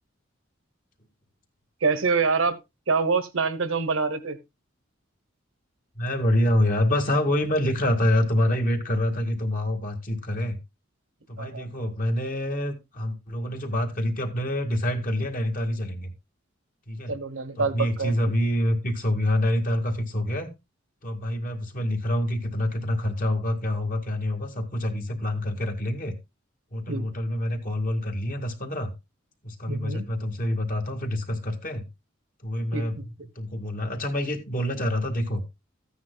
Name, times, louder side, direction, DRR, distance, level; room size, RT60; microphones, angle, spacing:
voice 1, 1.8-2.6 2.9-4.4 11.4-11.7 17.1-18.1 26.9-27.1 29.7-30.1 32.7-33.0, right 4 dB, 80° right, 1.1 m, -26 dB
voice 2, 6.0-10.6 11.3-16.1 16.9-17.2 17.6-20.5 21.0-26.1 26.7-28.9 29.4-31.9 32.4-35.4, left 1 dB, 45° left, 2.0 m, -26 dB
14.5 x 9.5 x 2.3 m
head